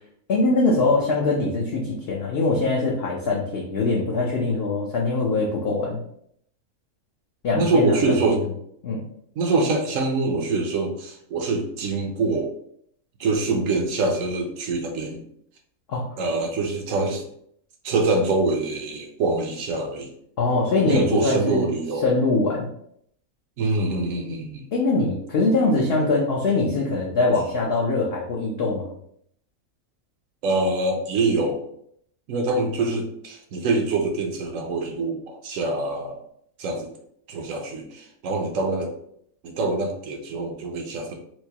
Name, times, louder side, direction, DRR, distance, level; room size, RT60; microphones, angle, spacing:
voice 1, 0.3-6.0 7.4-8.4 8.8-9.0 15.9-16.2 20.4-21.7 22.0-22.7 24.7-28.9, left 3 dB, 55° left, -3 dB, 0.8 m, -22 dB
voice 2, 7.5-8.4 9.4-12.5 13.2-15.2 16.2-17.2 17.8-20.1 20.7-22.0 23.6-24.6 30.4-31.6 32.3-36.2 36.6-36.9 37.3-38.9 39.4-41.1, right 3 dB, 70° right, 3 dB, 1.1 m, -24 dB
4.5 x 2.2 x 2.8 m, 0.68 s
omnidirectional pair, 1.4 m